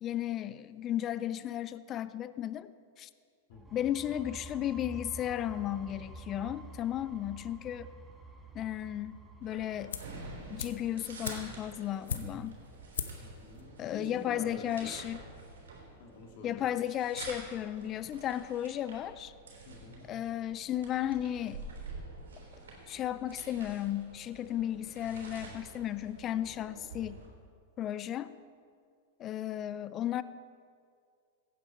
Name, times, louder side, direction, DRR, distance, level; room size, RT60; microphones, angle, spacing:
voice 1, 0.0-2.7 3.0-3.1 3.7-7.9 8.5-9.1 9.4-9.9 10.5-12.6 13.8-15.2 16.4-19.3 20.1-21.6 22.9-27.2 27.8-28.3 29.2-30.2, left 11 dB, 35° left, 15 dB, 0.4 m, -34 dB
voice 2, 3.5-3.9 13.2-15.0 16.0-16.7 19.7-20.1, left 2 dB, 55° left, 1 dB, 2.2 m, -48 dB
sound 1, 3.5-11.1, right 3 dB, 10° right, 1.4 m, -49 dB
sound 2, 9.4-27.3, right 3 dB, 85° right, 3.4 m, -48 dB
sound 3, 9.9-10.2 10.6-12.6 12.9-13.3 13.6-13.7, left 7 dB, 85° left, 0.7 m, -38 dB
15.5 x 9.3 x 4.3 m, 2.2 s
hypercardioid pair, 120°, 0 cm